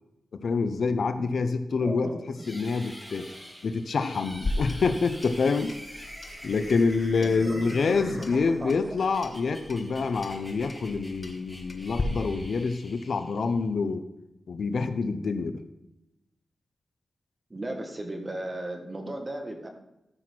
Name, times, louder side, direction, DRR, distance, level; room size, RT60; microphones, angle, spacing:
voice 1, 0.3-2.1 2.5-3.3 3.6-6.1 6.4-14.0 14.5-15.6, left 4 dB, 65° left, 9 dB, 0.7 m, -27 dB
voice 2, 1.8-2.2 7.2-8.8 17.5-19.7, right 1 dB, 25° right, 3 dB, 1.5 m, -36 dB
sound 1, 2.3-13.7, equal, 5° right, 2.7 m, -46 dB
Clock, 4.3-12.0, left 2 dB, 35° left, 1.2 m, -38 dB
14.0 x 6.0 x 4.5 m, 0.93 s
wide cardioid pair, 155°, 0 cm